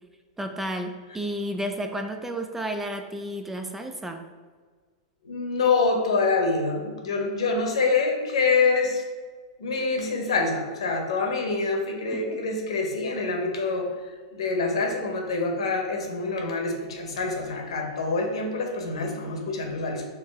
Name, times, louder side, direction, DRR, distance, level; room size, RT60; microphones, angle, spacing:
voice 1, 0.4-4.2 12.1-12.4, right 1 dB, 10° right, 5 dB, 0.3 m, -32 dB
voice 2, 5.2-9.0 9.6-20.0, left 4 dB, 85° left, 2 dB, 0.9 m, -26 dB
4.6 x 2.7 x 3.5 m, 1.5 s
hypercardioid pair, 130°, 3 cm